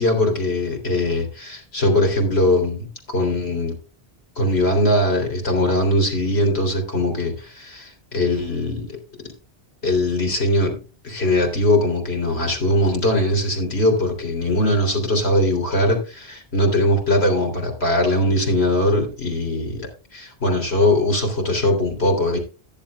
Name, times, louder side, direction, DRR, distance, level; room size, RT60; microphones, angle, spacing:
voice 1, 0.0-3.8 4.4-9.0 9.8-10.8 11.0-22.4, left 1 dB, 75° left, 3 dB, 3.6 m, -21 dB
14.5 x 11.0 x 2.3 m, 0.33 s
omnidirectional pair, 1.1 m